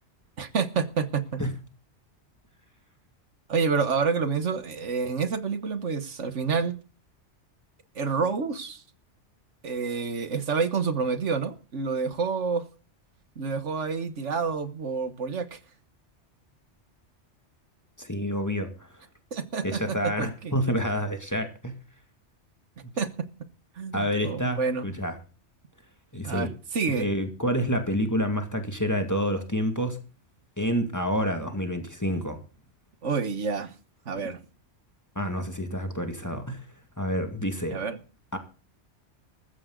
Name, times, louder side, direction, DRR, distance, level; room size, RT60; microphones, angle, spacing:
voice 1, 0.4-1.4 3.5-6.8 8.0-8.8 9.6-12.7 13.4-15.6 19.3-20.5 23.0-23.3 23.8-24.9 26.2-27.1 33.0-33.7 34.1-34.4 37.7-38.0, right 5 dB, 85° right, 1.7 m, -28 dB
voice 2, 18.0-19.0 19.6-21.8 23.9-25.1 26.1-26.5 26.9-30.0 30.6-32.4 34.1-34.3 35.2-36.7 37.0-37.8 38.3-38.4, equal, 15° left, 2.2 m, -28 dB
14.5 x 14.5 x 3.9 m
omnidirectional pair, 1.2 m